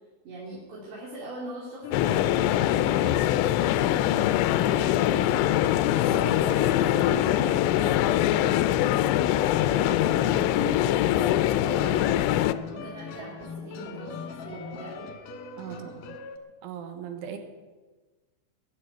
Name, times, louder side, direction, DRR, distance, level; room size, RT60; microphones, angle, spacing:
voice 1, 0.2-5.8 6.3-9.1 9.6-12.2 12.7-15.1 15.7-15.9, right 1 dB, 65° right, -5 dB, 5.0 m, -41 dB
sound 1, 1.8-16.4, left 8 dB, 65° left, 2.3 m, -40 dB
sound 2, 1.9-12.5, left 13 dB, 85° left, 2.4 m, -23 dB
voice 2, 6.1-6.5 15.6-16.2 16.6-17.4, right 7 dB, 85° right, 6 dB, 3.9 m, -39 dB
sound 3, 9.8-15.1, left 3 dB, 25° right, 1.4 m, -43 dB
21.0 x 7.1 x 9.3 m, 1.3 s
omnidirectional pair, 5.5 m